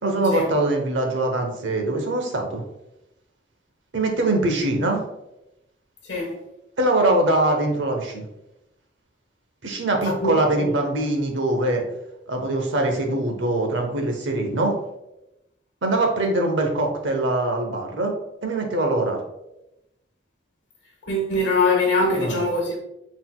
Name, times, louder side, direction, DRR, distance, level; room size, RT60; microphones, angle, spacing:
voice 1, 0.0-2.6 3.9-5.0 6.8-8.2 9.6-11.8 12.3-14.7 15.8-18.1 18.4-19.2 22.1-22.4, right 2 dB, 90° right, 0.8 m, -22 dB
voice 2, 10.0-10.7 21.0-22.8, left 2 dB, 85° left, 1.2 m, -23 dB
4.0 x 3.9 x 2.3 m
head